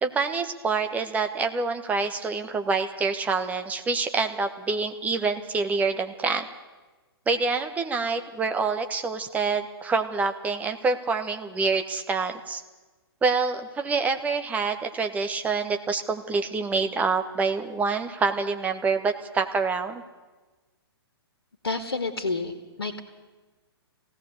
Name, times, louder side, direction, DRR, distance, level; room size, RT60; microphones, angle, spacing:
voice 1, 0.0-6.5 7.3-12.6 13.2-20.0, right 4 dB, 10° right, 6 dB, 1.3 m, -26 dB
voice 2, 21.6-23.0, left 3 dB, 65° left, 6 dB, 2.0 m, -29 dB
20.5 x 16.5 x 8.1 m, 1.3 s
figure-of-eight pair, 115°, 13 cm